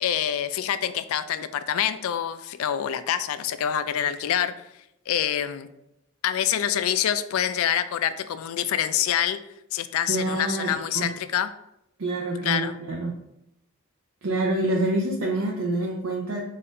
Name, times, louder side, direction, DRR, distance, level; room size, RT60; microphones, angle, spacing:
voice 1, 0.0-4.5 5.1-5.7 6.2-9.4 9.7-11.5 12.4-12.7, left 10 dB, 75° left, 13 dB, 0.3 m, -26 dB
voice 2, 10.1-11.1 12.0-13.1 14.2-16.4, right 2 dB, 75° right, -2 dB, 0.6 m, -27 dB
4.1 x 2.5 x 3.8 m, 0.84 s
head